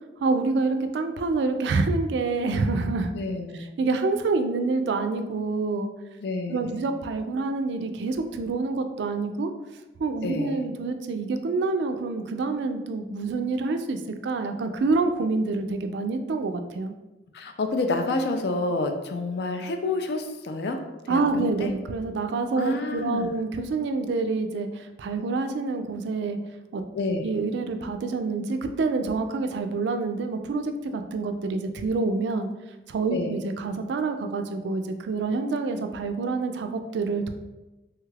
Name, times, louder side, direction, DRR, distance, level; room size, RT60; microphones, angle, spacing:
voice 1, 0.2-3.1 3.8-5.9 6.5-9.5 10.0-16.9 21.1-26.4 26.7-26.8 27.2-32.5 32.9-37.3, right 3 dB, 70° right, 6 dB, 0.3 m, -27 dB
voice 2, 3.1-3.6 6.2-6.8 10.2-10.6 17.3-20.8 21.1-21.2 21.6-21.7 22.6-23.3 27.0-27.2 33.1-33.3, left 2 dB, 60° left, 5 dB, 0.4 m, -28 dB
3.3 x 2.3 x 3.2 m, 1.1 s
head